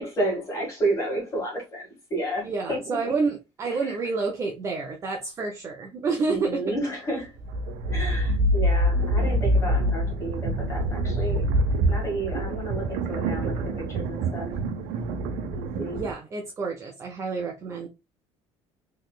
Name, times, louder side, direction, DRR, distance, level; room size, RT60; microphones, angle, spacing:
voice 1, 0.0-3.1 3.6-4.0 6.3-7.3 7.9-11.5 11.9-14.5 15.5-16.0, right 1 dB, 25° left, 1.8 m, -31 dB
voice 2, 2.4-6.7 15.9-17.9, right 4 dB, 25° right, 0.5 m, -29 dB
sound 1, 7.3-16.1, right 1 dB, 90° right, 0.7 m, -25 dB
3.9 x 3.2 x 2.3 m
cardioid pair, 175°, 12 cm